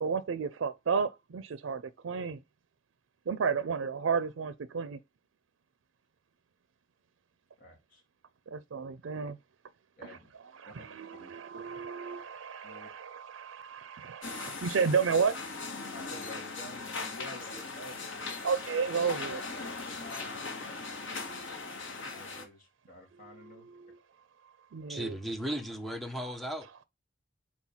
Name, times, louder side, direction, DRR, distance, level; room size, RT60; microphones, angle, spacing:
voice 1, 0.0-2.4 3.3-5.0 8.5-9.4 10.0-10.2 10.5-15.4 18.4-19.4 21.0-21.5 23.2-24.0 24.7-25.1, right 5 dB, 85° right, 0.4 m, -32 dB
voice 2, 7.6-8.0 10.0-10.3 10.7-10.9 11.2-11.6 12.6-12.9 15.9-18.4 19.8-21.2 22.0-23.7, left 1 dB, 45° left, 2.3 m, -50 dB
sound 1, 14.2-22.4, left 3 dB, 85° left, 1.4 m, -39 dB
voice 3, 24.9-26.8, right 1 dB, ahead, 1.0 m, -36 dB
4.5 x 4.3 x 5.5 m
head